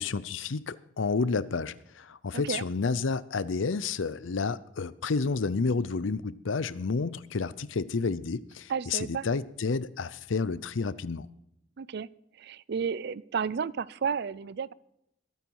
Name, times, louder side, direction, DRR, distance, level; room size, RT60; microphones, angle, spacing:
voice 1, 0.0-11.3, left 4 dB, 90° left, 0.6 m, -30 dB
voice 2, 2.3-2.6 8.7-9.3 11.8-12.1 12.4-14.7, right 6 dB, 60° right, 0.4 m, -32 dB
21.5 x 9.2 x 4.7 m
head